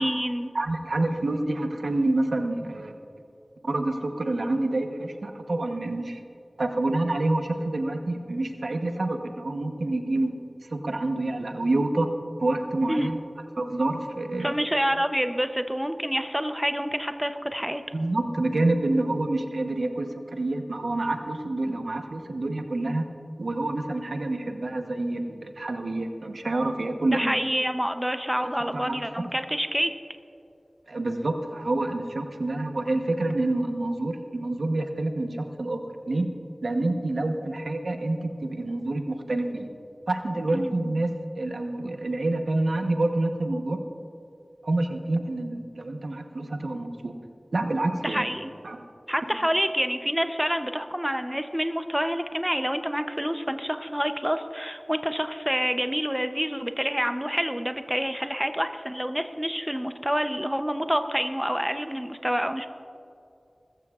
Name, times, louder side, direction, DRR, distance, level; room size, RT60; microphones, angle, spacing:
voice 1, 0.0-0.5 12.9-13.1 14.4-17.8 27.0-29.9 40.5-40.7 48.0-48.5 49.1-62.7, equal, 5° right, 8 dB, 0.6 m, -27 dB
voice 2, 0.5-2.9 3.6-6.2 6.6-10.3 10.7-12.1 12.4-13.2 13.6-14.5 17.9-23.0 23.4-27.3 28.6-29.0 30.9-35.8 36.1-36.3 36.6-39.7 40.1-41.1 41.4-43.8 44.6-47.1 47.5-48.3 48.6-48.8, right 2 dB, 80° right, 5 dB, 0.9 m, -27 dB
20.5 x 14.0 x 2.4 m, 2.6 s
wide cardioid pair, 55°, 0 cm